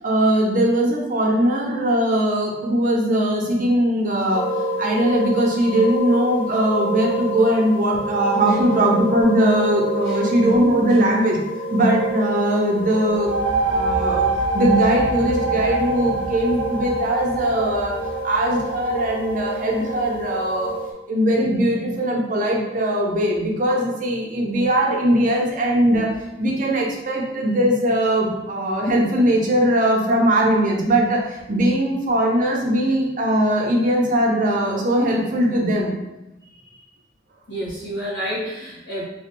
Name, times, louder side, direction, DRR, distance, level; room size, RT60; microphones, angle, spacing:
voice 1, 0.0-4.5 4.8-11.4 11.7-14.3 14.5-18.0 18.2-20.7 21.1-35.9, right 1 dB, 45° right, -1 dB, 0.6 m, -20 dB
sound 1, 4.3-20.9, equal, 10° left, 0.4 m, -29 dB
sound 2, 13.1-20.5, right 4 dB, 80° right, 0.3 m, -26 dB
voice 2, 36.5-36.8 37.5-39.0, equal, 70° left, -7 dB, 1.4 m, -30 dB
3.1 x 2.9 x 2.9 m, 0.94 s
head